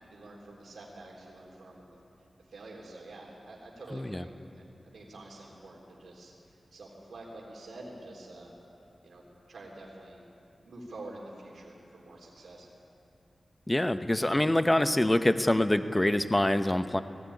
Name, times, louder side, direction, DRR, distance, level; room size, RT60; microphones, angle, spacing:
voice 1, 0.1-2.0 2.5-6.3 6.7-8.5 9.0-9.2 9.5-10.2 10.6-12.7, right 2 dB, 90° right, -3 dB, 3.6 m, -47 dB
voice 2, 3.9-4.3 13.7-17.0, left 1 dB, 15° left, 10 dB, 0.8 m, -25 dB
19.5 x 16.0 x 9.7 m, 2.6 s
wide cardioid pair, 80°, 0 cm